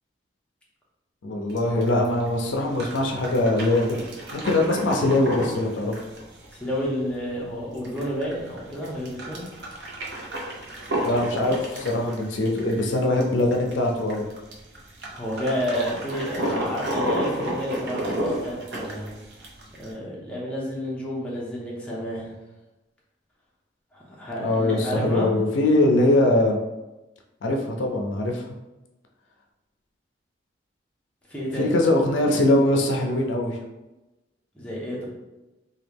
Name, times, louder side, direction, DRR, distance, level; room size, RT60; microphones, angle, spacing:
voice 1, 1.2-4.0 4.3-6.0 11.0-14.3 24.4-26.6 27.4-28.5 31.6-33.6, left 1 dB, 85° left, 1 dB, 0.5 m, -22 dB
sound 1, 1.5-19.9, right 1 dB, 60° right, 0.6 m, -32 dB
voice 2, 6.6-9.4 15.1-19.1 19.8-22.3 23.9-25.3 31.3-31.9 34.5-35.1, equal, 5° left, -6 dB, 0.7 m, -30 dB
2.9 x 2.3 x 3.4 m, 1.0 s
head